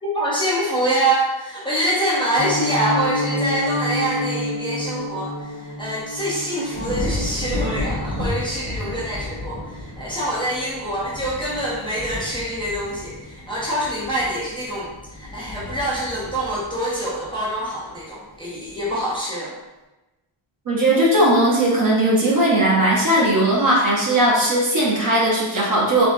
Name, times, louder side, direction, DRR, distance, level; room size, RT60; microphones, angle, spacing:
voice 1, 0.0-19.6, right 1 dB, 10° left, -8 dB, 0.6 m, -25 dB
Piano, 2.4-13.3 13.5-13.7 14.1-14.2 14.6-14.8 15.1-15.2, left 1 dB, 35° left, 1.0 m, -31 dB
sound 1, 6.7-18.0 18.4-18.9, left 1 dB, 65° right, 1.3 m, -32 dB
voice 2, 20.7-26.1, right 1 dB, 40° right, -4 dB, 0.9 m, -18 dB
3.5 x 3.0 x 2.6 m, 1.0 s
wide cardioid pair, 170°, 50 cm